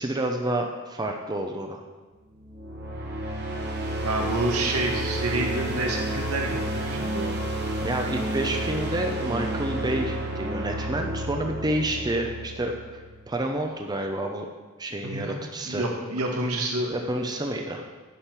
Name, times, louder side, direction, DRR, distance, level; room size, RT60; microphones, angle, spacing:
voice 1, 0.0-1.8 7.8-12.8 13.3-14.5 14.8-15.9 16.9-17.8, right 1 dB, 20° right, 3 dB, 0.6 m, -29 dB
sound 1, 2.4-13.4, right 1 dB, 50° right, 1.4 m, -31 dB
voice 2, 4.0-7.4 15.0-15.4 15.7-16.9, right 2 dB, 90° right, 0 dB, 1.7 m, -28 dB
10.0 x 5.1 x 6.0 m, 1.3 s
head